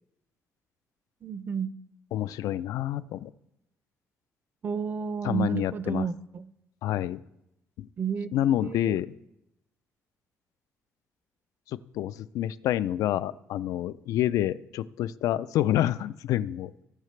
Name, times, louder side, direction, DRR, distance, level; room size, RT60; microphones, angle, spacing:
voice 1, 1.2-1.7 4.6-6.5 8.0-8.3 8.6-9.0, right 7 dB, 35° right, 15 dB, 0.5 m, -31 dB
voice 2, 2.1-3.3 5.2-6.1 6.8-7.2 7.8-7.9 8.3-9.2 11.9-16.7, left 12 dB, 85° left, 16 dB, 0.4 m, -28 dB
19.0 x 6.6 x 3.2 m, 0.86 s
cardioid pair, 150°, 6 cm